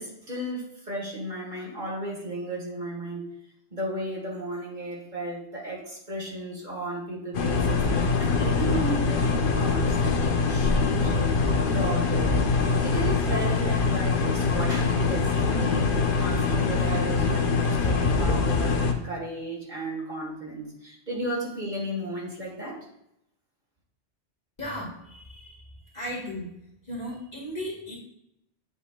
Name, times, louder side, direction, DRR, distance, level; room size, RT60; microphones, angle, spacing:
voice 1, 0.0-3.2 3.7-11.3 11.7-12.4 12.8-22.9, right 1 dB, 45° right, -4 dB, 1.7 m, -34 dB
sound 1, 7.3-18.9, left 4 dB, 55° left, 0.9 m, -24 dB
voice 2, 24.6-25.7 25.9-26.5 26.8-27.9, equal, 40° left, -5 dB, 1.9 m, -36 dB
8.0 x 5.1 x 2.3 m, 0.79 s
omnidirectional pair, 1.1 m